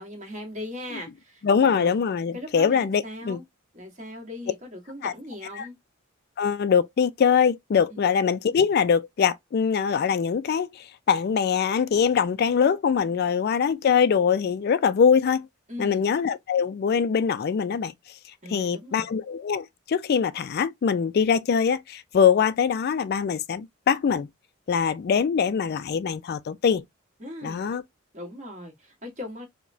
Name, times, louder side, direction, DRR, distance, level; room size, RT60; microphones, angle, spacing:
voice 1, 0.0-2.0 2.3-3.4 3.7-5.7 7.9-8.0 15.7-16.1 18.4-19.1 27.2-27.6 28.1-29.5, left 1 dB, 35° right, 1.4 m, -39 dB
voice 2, 1.4-3.4 5.0-5.1 5.5-5.7 6.4-15.5 15.8-17.9 18.5-24.3 24.7-26.8 27.4-27.8, left 6 dB, 50° left, 0.3 m, -23 dB
4.8 x 2.2 x 2.6 m
head